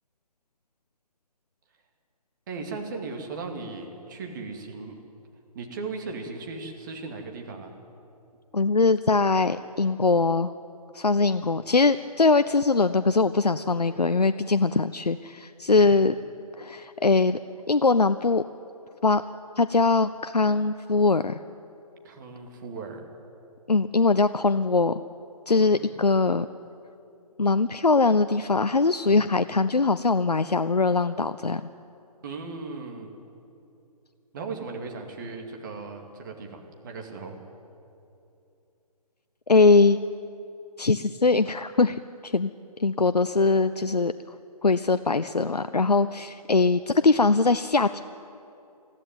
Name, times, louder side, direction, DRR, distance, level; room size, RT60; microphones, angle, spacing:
voice 1, 2.5-5.0 5.5-7.8 15.8-16.0 22.0-23.1 25.7-25.9 32.2-33.1 34.3-37.4, right 4 dB, 30° right, 2 dB, 2.3 m, -37 dB
voice 2, 8.5-10.5 10.9-16.1 16.6-17.4 17.7-18.4 19.0-19.2 19.6-21.4 23.7-25.0 25.5-26.5 27.4-31.6 39.5-40.0 40.8-42.5 42.8-44.1 44.6-48.0, left 3 dB, 85° left, 12 dB, 0.6 m, -22 dB
21.0 x 14.5 x 9.4 m, 2.7 s
figure-of-eight pair, 145°, 20 cm